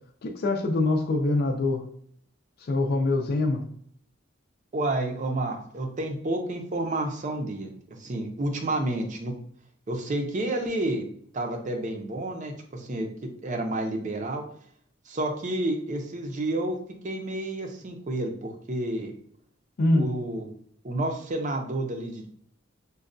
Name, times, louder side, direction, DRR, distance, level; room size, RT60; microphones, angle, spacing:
voice 1, 0.2-1.8 2.6-3.6 19.8-20.1, left 2 dB, 50° left, 4 dB, 0.4 m, -24 dB
voice 2, 4.7-9.3 9.9-11.1 11.3-13.1 13.4-14.4 15.1-16.7 17.0-19.1 19.9-20.6 20.8-22.3, right 1 dB, 40° right, 4 dB, 0.5 m, -30 dB
5.2 x 2.2 x 2.5 m, 0.63 s
head